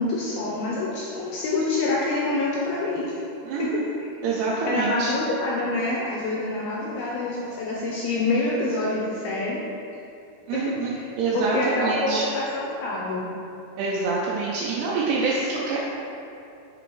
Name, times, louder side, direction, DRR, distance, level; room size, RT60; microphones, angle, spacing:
voice 1, 0.0-3.2 3.6-3.7 4.6-9.6 10.5-11.1 11.3-13.3, left 2 dB, 85° left, -4 dB, 2.0 m, -26 dB
voice 2, 3.5-3.8 4.2-5.1 10.5-12.3 13.8-15.8, right 4 dB, 80° right, -6 dB, 2.5 m, -26 dB
6.9 x 3.0 x 4.6 m, 2.7 s
omnidirectional pair, 4.9 m